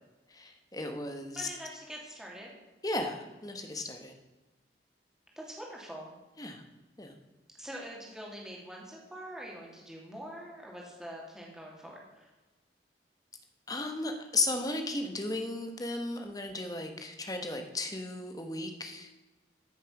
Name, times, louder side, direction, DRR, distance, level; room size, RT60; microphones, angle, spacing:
voice 1, 0.3-1.5 2.8-4.2 6.4-6.6 7.0-7.1 13.7-19.1, left 2 dB, 20° left, 5 dB, 1.3 m, -35 dB
voice 2, 1.3-2.5 5.4-6.1 7.6-12.3, equal, 5° right, -2 dB, 2.6 m, -44 dB
14.0 x 6.7 x 6.0 m, 1.1 s
head